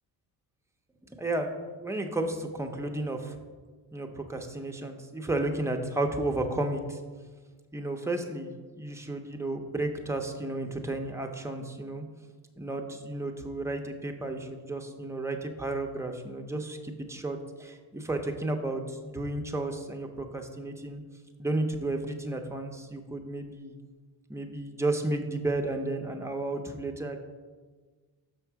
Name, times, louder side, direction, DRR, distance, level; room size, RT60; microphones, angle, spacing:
voice 1, 1.2-3.4 3.9-7.0 7.7-12.0 12.6-21.0 21.4-23.7 24.3-27.2, right 2 dB, 5° right, 3 dB, 0.5 m, -33 dB
6.2 x 5.9 x 4.5 m, 1.4 s
cardioid pair, 150°, 41 cm